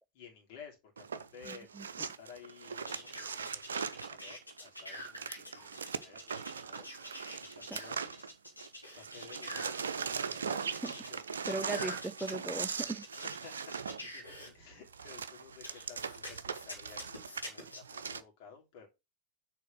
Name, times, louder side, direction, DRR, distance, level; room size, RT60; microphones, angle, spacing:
voice 1, 0.1-7.2 7.5-8.3 8.9-11.4 11.8-12.0 12.8-13.7 14.0-18.9, left 6 dB, 45° left, 2.9 m, -54 dB
sound 1, 1.0-8.7 8.9-18.2, right 6 dB, 70° right, 0.6 m, -40 dB
voice 2, 1.5-1.9 7.7-7.8 10.8-10.9 11.5-13.0, right 2 dB, 5° right, 0.4 m, -38 dB
sound 2, 2.9-14.5 15.6-17.8, equal, 85° left, 2.3 m, -47 dB
6.7 x 4.1 x 6.0 m
figure-of-eight pair, 90°, 0 cm